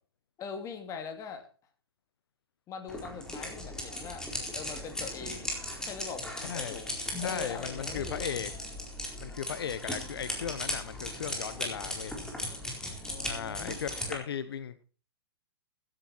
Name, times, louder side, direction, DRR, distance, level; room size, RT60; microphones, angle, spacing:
voice 1, 0.4-1.5 2.7-4.2 4.5-5.6 5.8-8.3 13.1-13.8, left 5 dB, 25° left, 6 dB, 2.9 m, -42 dB
sound 1, 2.9-14.2, left 1 dB, 5° left, 4.2 m, -37 dB
voice 2, 6.4-6.8 7.2-8.5 9.2-12.1 13.2-14.8, left 8 dB, 70° left, 13 dB, 1.1 m, -37 dB
16.0 x 10.5 x 4.5 m, 0.37 s
hypercardioid pair, 120°, 13 cm